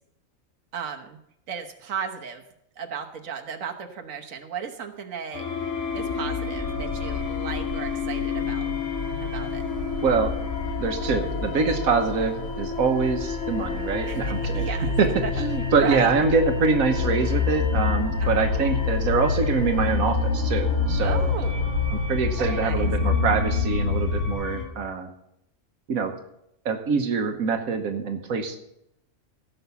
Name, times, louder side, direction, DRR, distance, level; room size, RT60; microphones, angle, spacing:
voice 1, 0.7-1.2 1.5-2.4 2.8-5.5 5.9-8.7 9.2-9.6 14.0-14.9 15.2-15.3 15.8-16.1 18.2-18.5 21.0-21.7 22.4-22.9, right 7 dB, 75° right, 3 dB, 1.6 m, -35 dB
sound 1, 5.3-24.6, left 5 dB, 85° left, 2.6 m, -31 dB
sound 2, 6.6-24.3, left 4 dB, 55° left, 3.3 m, -28 dB
voice 2, 10.0-10.4 10.8-14.6 15.0-21.3 21.9-25.1 25.9-26.1 26.6-28.6, right 5 dB, 90° right, 5 dB, 1.5 m, -24 dB
16.5 x 5.7 x 7.0 m, 0.79 s
omnidirectional pair, 1.4 m